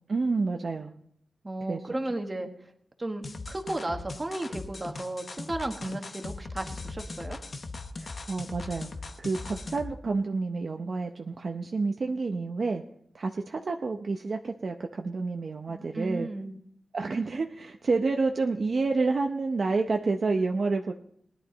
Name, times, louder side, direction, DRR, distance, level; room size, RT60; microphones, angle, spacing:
voice 1, 0.1-0.9 1.7-1.8 8.0-8.9 9.2-12.8 13.1-16.3 16.9-20.9, right 3 dB, 40° right, 3 dB, 0.7 m, -29 dB
voice 2, 1.4-2.5 3.0-7.4 15.7-16.6, right 1 dB, 20° right, 4 dB, 1.4 m, -34 dB
sound 1, 3.2-10.0, left 3 dB, 40° left, 0.9 m, -39 dB
20.0 x 11.0 x 4.0 m, 0.68 s
wide cardioid pair, 170°, 0 cm